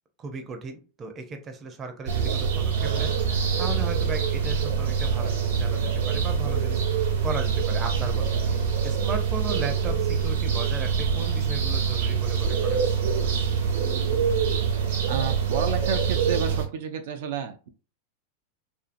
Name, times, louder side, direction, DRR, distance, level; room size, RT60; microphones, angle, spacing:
voice 1, 0.2-3.1 3.6-12.8, right 3 dB, 25° right, 6 dB, 0.6 m, -36 dB
sound 1, 2.1-16.7, right 6 dB, 85° right, 0.9 m, -25 dB
voice 2, 15.1-17.7, right 7 dB, 70° right, 6 dB, 0.4 m, -31 dB
2.7 x 2.6 x 2.5 m, 0.36 s
supercardioid pair, 130°, 0 cm